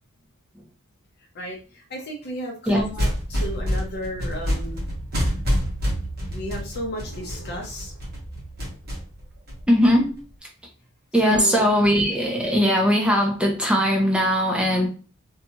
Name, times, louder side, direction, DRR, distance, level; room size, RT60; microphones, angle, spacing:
voice 1, 1.3-4.8 6.3-8.0 11.1-11.8, equal, 50° left, 0 dB, 0.6 m, -34 dB
sound 1, 2.8-10.2, equal, 45° right, 1.1 m, -28 dB
voice 2, 9.7-10.1 11.1-14.9, equal, 5° right, 0 dB, 0.5 m, -19 dB
2.7 x 2.3 x 2.8 m, 0.36 s
head